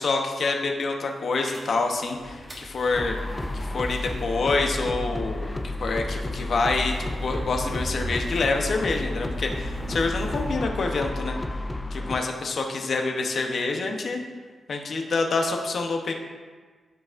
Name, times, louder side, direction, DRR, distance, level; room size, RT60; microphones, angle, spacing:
voice 1, 0.0-3.1 3.5-5.5 5.8-11.4 11.9-14.2 14.7-16.1, left 3 dB, 50° left, 3 dB, 0.8 m, -27 dB
sound 1, 1.4-10.6, equal, 20° right, 1.4 m, -40 dB
sound 2, 2.9-12.2, left 2 dB, 15° left, 0.3 m, -31 dB
13.5 x 4.8 x 2.5 m, 1.5 s
wide cardioid pair, 155°, 0 cm